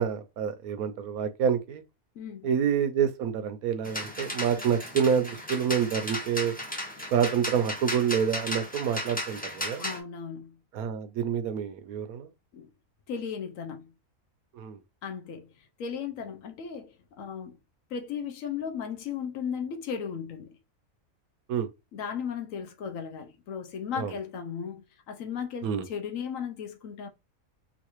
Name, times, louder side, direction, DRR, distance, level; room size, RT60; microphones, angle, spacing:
voice 1, 0.0-1.8 2.4-6.5 7.1-9.8 10.7-12.3 14.5-14.8 21.5-21.7 24.0-24.1 25.6-25.8, right 7 dB, 80° right, 1.1 m, -27 dB
voice 2, 2.2-2.5 9.8-10.6 12.5-12.7 13.1-13.9 15.0-17.6 17.9-20.6 21.9-27.1, left 7 dB, 65° left, 1.0 m, -36 dB
sound 1, 3.8-10.0, left 1 dB, 10° left, 0.5 m, -35 dB
3.9 x 2.5 x 3.0 m
omnidirectional pair, 1.5 m